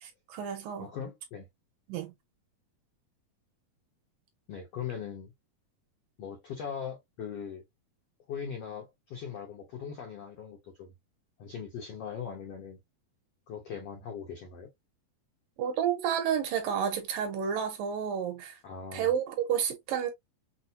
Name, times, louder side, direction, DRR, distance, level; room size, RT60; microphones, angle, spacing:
voice 1, 0.0-0.9 1.9-2.1 15.6-18.6 18.9-20.1, right 8 dB, 75° right, 2.3 m, -30 dB
voice 2, 0.8-1.5 4.5-5.3 6.2-7.6 8.3-10.9 11.4-12.8 13.5-14.7 18.6-19.1, left 7 dB, 75° left, 1.4 m, -40 dB
6.2 x 2.2 x 2.7 m
omnidirectional pair, 4.4 m